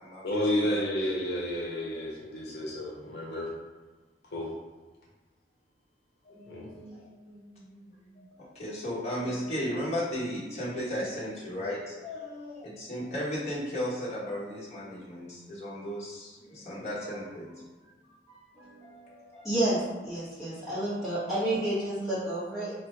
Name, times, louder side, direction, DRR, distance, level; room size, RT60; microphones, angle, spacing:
voice 1, 0.2-3.5 4.3-4.5 6.5-6.7, left 1 dB, 70° left, -4 dB, 0.8 m, -31 dB
voice 2, 6.2-17.9 18.3-19.8, equal, 40° left, -8 dB, 1.3 m, -36 dB
voice 3, 19.4-22.7, right 1 dB, ahead, -12 dB, 1.4 m, -30 dB
3.2 x 2.5 x 4.4 m, 1.3 s
head